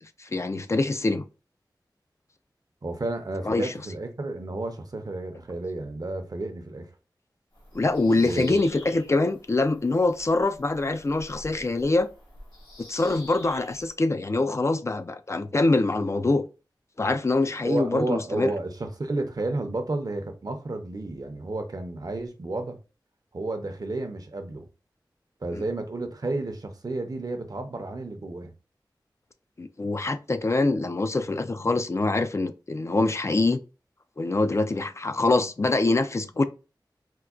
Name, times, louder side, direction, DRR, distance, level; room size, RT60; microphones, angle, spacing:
voice 1, 0.2-1.2 3.4-3.7 7.7-12.1 12.8-16.5 17.0-18.5 25.5-25.6 29.6-33.6 34.2-36.4, left 2 dB, 35° left, 0.3 m, -24 dB
voice 2, 2.8-6.9 8.1-8.7 17.6-22.8 23.3-24.6 25.4-28.5, right 2 dB, 50° right, 0.6 m, -31 dB
Bird vocalization bird call bird song, 7.5-13.9, left 1 dB, 80° left, 1.4 m, -48 dB
4.5 x 2.2 x 2.4 m
wide cardioid pair, 65°, 8 cm